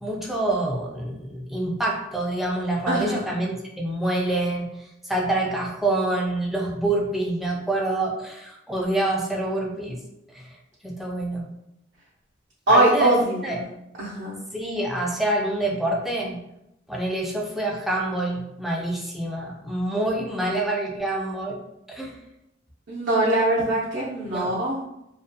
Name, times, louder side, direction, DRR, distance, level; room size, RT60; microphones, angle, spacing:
voice 1, 0.0-10.0 10.3-10.6 10.8-11.5 12.7-13.1 13.4-13.6 14.5-16.4 16.9-21.6 21.9-22.2 24.2-24.5, right 2 dB, ahead, -1 dB, 0.3 m, -26 dB
voice 2, 2.9-3.3 12.7-13.7 14.0-14.4 22.9-24.9, right 1 dB, 60° right, -6 dB, 0.5 m, -22 dB
2.4 x 2.1 x 2.6 m, 0.84 s
head